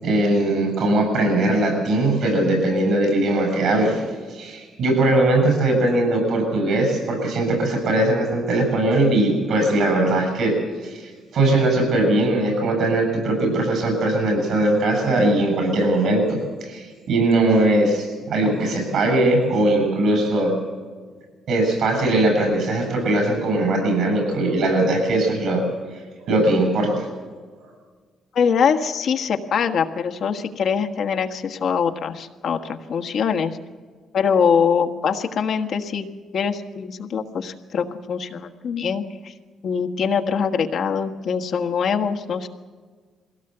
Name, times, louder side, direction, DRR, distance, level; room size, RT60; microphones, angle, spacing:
voice 1, 0.0-10.6 10.8-20.5 21.5-25.6 26.2-27.1, right 2 dB, 70° right, 4 dB, 7.8 m, -20 dB
voice 2, 28.3-33.6 34.1-36.1 36.3-39.3 39.6-42.5, left 6 dB, 65° left, 5 dB, 1.5 m, -23 dB
21.5 x 17.0 x 8.0 m, 1.5 s
cardioid pair, 90°, 0 cm